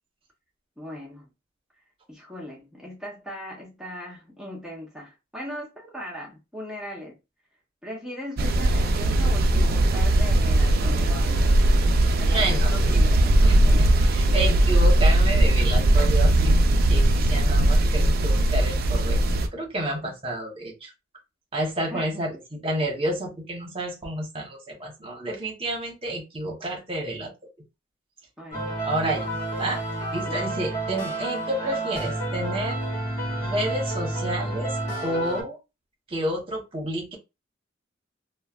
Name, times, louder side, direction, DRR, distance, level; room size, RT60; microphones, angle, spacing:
voice 1, 0.8-1.3 2.1-7.2 7.8-11.6 12.0-14.6 19.8-20.1 21.8-22.1 28.4-28.7 30.3-30.5, equal, 5° right, 0.7 m, -39 dB
sound 1, 8.4-19.5, right 1 dB, 50° right, 0.4 m, -19 dB
voice 2, 12.2-12.9 13.5-16.6 16.9-19.2 19.5-20.9 21.5-27.3 28.8-29.3 29.6-29.8 30.1-32.8 33.4-34.7 35.0-35.6 36.1-37.2, right 1 dB, 30° right, 1.0 m, -30 dB
sound 2, 28.5-35.4, right 1 dB, 30° left, 1.8 m, -30 dB
3.1 x 2.2 x 2.4 m
head